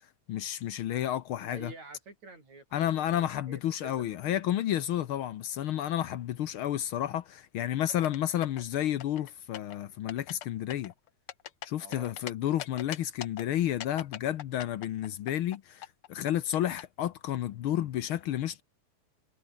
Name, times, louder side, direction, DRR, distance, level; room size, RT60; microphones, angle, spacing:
voice 1, 0.3-1.7 2.7-10.9 11.7-18.6, left 11 dB, 75° left, 1.2 m, -31 dB
voice 2, 1.4-4.4 11.8-12.1, right 3 dB, 65° right, 9.4 m, -49 dB
sound 1, 7.9-8.6 9.0-9.8 10.1-10.5 10.7-12.3 12.6-13.4 13.8-15.6 15.8-16.8, left 11 dB, 60° left, 1.6 m, -41 dB
omnidirectional pair, 3.5 m